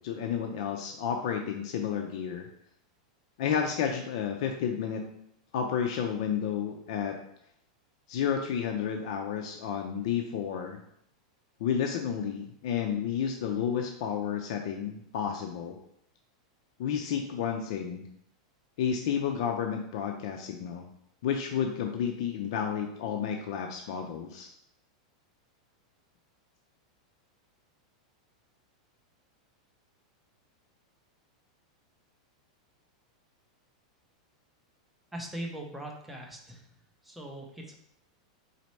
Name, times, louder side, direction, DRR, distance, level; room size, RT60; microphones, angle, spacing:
voice 1, 0.0-2.5 3.4-5.0 5.5-7.2 8.1-10.8 11.6-15.8 16.8-18.0 18.8-20.9 21.2-24.5, left 8 dB, 55° left, 3 dB, 0.5 m, -31 dB
voice 2, 35.1-36.6 37.0-37.7, right 1 dB, 5° right, 0 dB, 0.6 m, -40 dB
4.2 x 4.1 x 3.1 m, 0.73 s
supercardioid pair, 160°, 4 cm